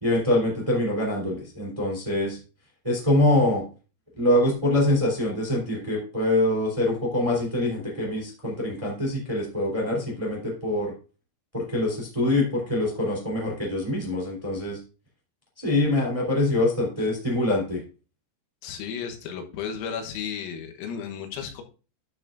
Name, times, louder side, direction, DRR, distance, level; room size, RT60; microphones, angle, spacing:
voice 1, 0.0-2.4 2.8-3.6 4.2-10.9 11.5-14.8 15.6-17.8, left 1 dB, 10° right, -2 dB, 2.2 m, -24 dB
voice 2, 18.6-21.6, left 7 dB, 85° left, 4 dB, 3.9 m, -34 dB
12.0 x 6.8 x 2.6 m, 0.33 s
omnidirectional pair, 6.0 m